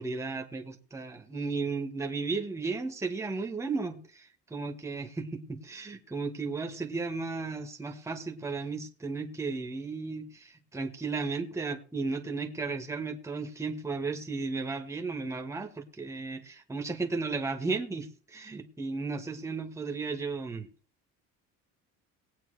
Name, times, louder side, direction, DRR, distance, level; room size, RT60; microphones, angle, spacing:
voice 1, 0.0-20.7, right 4 dB, 10° right, 1.3 m, -34 dB
19.0 x 8.5 x 3.3 m
cardioid pair, 140°, 30 cm